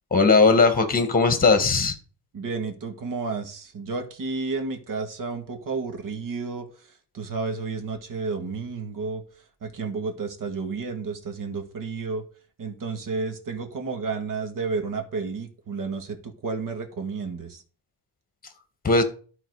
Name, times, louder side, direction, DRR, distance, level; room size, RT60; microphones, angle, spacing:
voice 1, 0.1-1.9 18.8-19.0, left 4 dB, 20° left, 9 dB, 1.7 m, -18 dB
voice 2, 2.3-6.7 7.1-9.2 9.6-12.2 12.6-17.6, right 4 dB, 50° right, 7 dB, 1.9 m, -31 dB
12.0 x 4.4 x 4.8 m, 0.39 s
cardioid pair, 135°, 41 cm